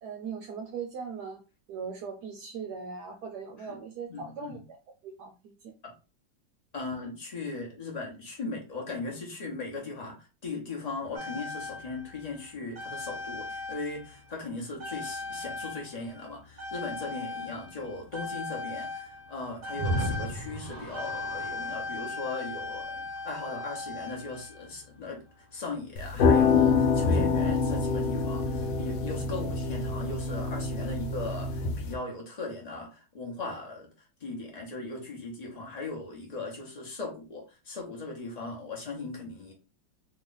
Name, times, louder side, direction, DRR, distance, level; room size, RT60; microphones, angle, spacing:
voice 1, 0.0-1.4 1.7-4.8 5.0-5.7, right 6 dB, 70° right, 4 dB, 1.0 m, -39 dB
voice 2, 4.1-4.6 5.8-5.9 6.7-25.2 25.5-39.5, left 3 dB, 70° left, -1 dB, 0.4 m, -38 dB
sound 1, 11.1-14.4 14.8-24.9 25.8-25.9, left 2 dB, 40° right, 0.6 m, -37 dB
sound 2, 26.0-31.9, left 5 dB, 85° left, 1.3 m, -26 dB
3.0 x 2.2 x 3.8 m, 0.31 s
omnidirectional pair, 2.0 m